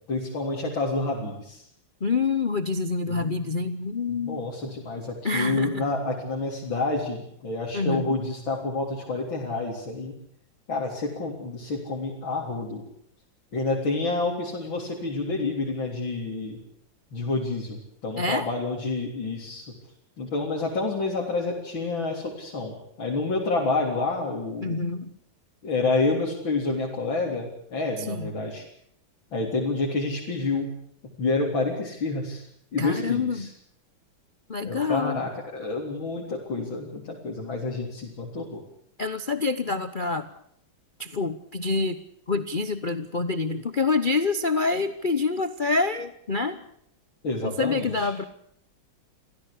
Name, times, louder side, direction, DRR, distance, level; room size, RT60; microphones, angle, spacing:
voice 1, 0.0-1.6 3.1-3.5 4.2-10.1 10.7-12.8 13.5-16.6 17.1-19.7 20.2-24.8 25.6-28.6 29.3-30.7 31.0-32.4 32.7-33.5 34.6-38.6 47.2-48.1, left 3 dB, 75° left, -2 dB, 4.4 m, -28 dB
voice 2, 2.0-4.4 5.2-5.8 7.7-8.2 18.2-18.5 24.6-25.1 28.0-28.3 32.8-33.5 34.5-35.2 39.0-40.3 41.0-42.0 42.3-46.6 47.4-48.2, left 4 dB, 40° left, 11 dB, 0.8 m, -27 dB
26.5 x 16.0 x 8.5 m, 0.70 s
omnidirectional pair, 2.2 m